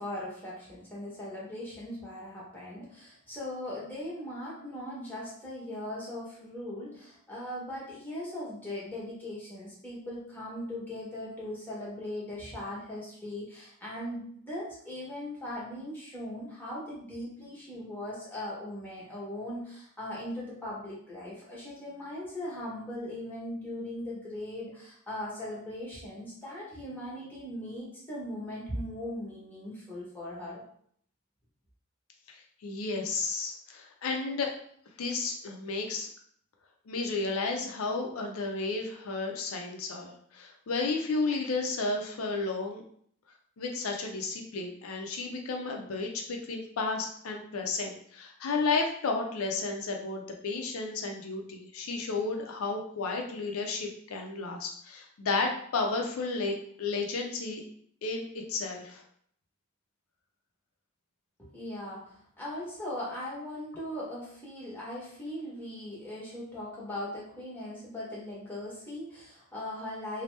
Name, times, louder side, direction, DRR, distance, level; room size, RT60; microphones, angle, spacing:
voice 1, 0.0-30.6 61.4-70.2, left 1 dB, 10° left, -7 dB, 1.0 m, -39 dB
voice 2, 32.3-34.5 35.0-36.1 36.9-42.8 43.6-57.6 58.0-59.0, left 3 dB, 85° left, 2 dB, 0.5 m, -32 dB
2.8 x 2.0 x 3.2 m, 0.63 s
head